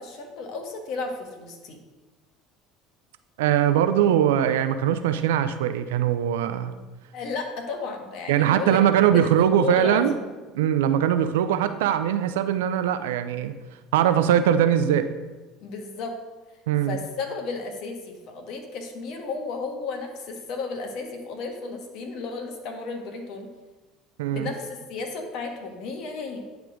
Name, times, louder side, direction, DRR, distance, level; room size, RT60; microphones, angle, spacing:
voice 1, 0.0-1.8 7.1-8.8 9.1-10.2 15.6-16.2 16.8-23.5 24.3-26.4, left 4 dB, 60° left, 3 dB, 1.4 m, -33 dB
voice 2, 3.4-6.7 8.3-10.1 10.5-13.5 13.9-15.1 16.7-17.0 24.2-24.5, right 10 dB, 75° right, 10 dB, 0.4 m, -21 dB
9.8 x 3.4 x 5.0 m, 1.2 s
hypercardioid pair, 70°, 0 cm